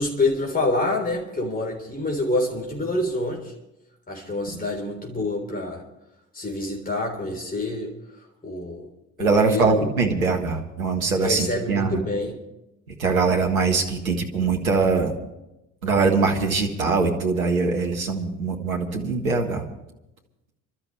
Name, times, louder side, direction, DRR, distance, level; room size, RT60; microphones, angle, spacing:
voice 1, 0.0-3.5 4.1-5.8 6.3-7.9 8.4-8.9 9.2-9.9 11.2-12.3, left 2 dB, 20° left, 0 dB, 3.9 m, -26 dB
voice 2, 9.2-12.0 13.0-15.1 15.8-19.6, right 4 dB, 85° right, 2 dB, 1.7 m, -22 dB
26.5 x 13.0 x 3.3 m, 0.91 s
figure-of-eight pair, 50°, 41 cm